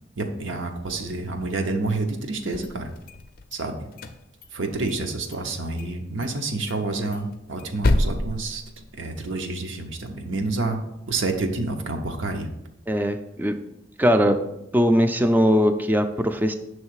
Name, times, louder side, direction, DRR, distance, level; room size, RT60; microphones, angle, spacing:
voice 1, 0.2-2.9 3.5-3.9 4.5-8.6 9.0-10.8 11.1-12.5, right 2 dB, 85° right, 4 dB, 0.8 m, -28 dB
sound 1, 2.4-3.6 3.9-5.0 5.3-5.4 5.8-5.9 6.2-6.3 6.7-9.3, left 1 dB, 50° left, 0.4 m, -28 dB
voice 2, 12.9-13.6 14.0-14.4 14.7-16.5, equal, 10° right, 8 dB, 0.3 m, -20 dB
6.5 x 3.2 x 4.7 m, 0.86 s
head